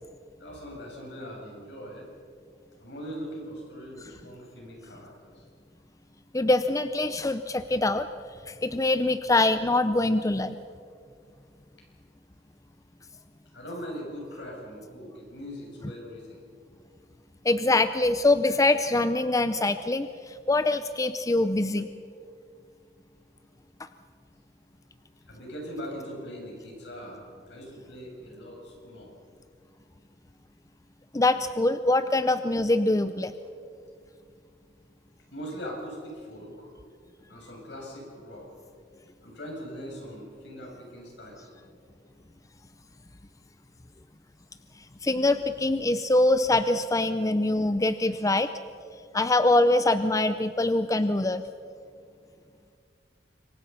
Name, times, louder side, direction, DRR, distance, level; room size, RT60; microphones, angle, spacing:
voice 1, 0.4-2.1 2.8-5.5 13.5-16.4 25.3-29.1 35.3-36.7 37.3-38.4 39.2-41.5, equal, 70° left, -1 dB, 7.7 m, -41 dB
voice 2, 6.3-8.1 8.5-10.6 17.4-21.9 31.1-33.3 44.8-48.5 49.1-51.4, left 2 dB, 20° left, 11 dB, 0.5 m, -24 dB
26.0 x 23.5 x 5.7 m, 2.3 s
head